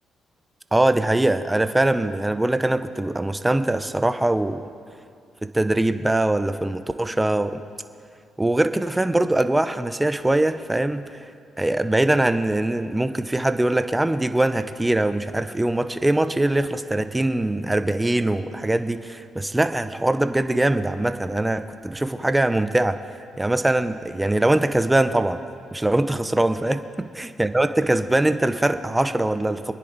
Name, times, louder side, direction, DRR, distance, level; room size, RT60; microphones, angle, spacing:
voice 1, 0.7-4.6 5.4-7.6 8.4-11.2 11.6-23.0 23.4-25.4 25.7-26.8 27.2-29.7, right 1 dB, 10° right, 10 dB, 0.8 m, -22 dB
26.0 x 10.0 x 4.1 m, 2.4 s
cardioid pair, 90°, 0 cm